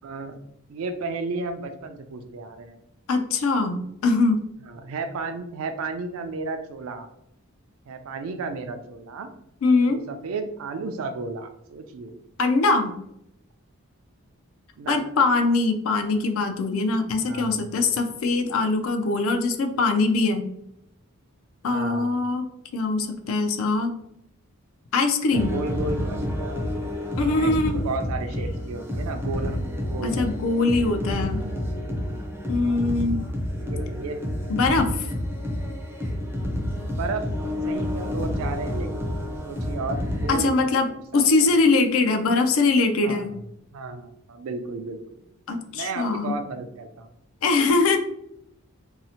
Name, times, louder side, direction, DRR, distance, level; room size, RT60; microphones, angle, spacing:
voice 1, 0.0-0.4 0.7-2.7 4.7-7.1 7.9-9.3 9.9-12.2 14.8-15.0 17.2-17.7 21.7-22.2 25.4-26.6 27.2-30.3 32.5-33.0 33.6-34.2 36.9-37.2 37.7-39.2 39.4-41.6 43.0-43.4 43.7-45.2 45.7-47.1, right 3 dB, 75° right, 7 dB, 0.4 m, -33 dB
voice 2, 3.1-4.4 9.6-10.0 12.4-12.9 14.9-20.5 21.6-23.9 24.9-25.5 27.2-27.8 30.0-31.4 32.5-33.2 34.5-35.1 40.3-40.9 41.1-43.3 45.5-46.3 47.4-48.0, left 3 dB, 70° left, 6 dB, 0.4 m, -22 dB
sound 1, 25.3-40.4, left 1 dB, 10° right, 0.4 m, -29 dB
2.7 x 2.0 x 2.7 m, 0.78 s
head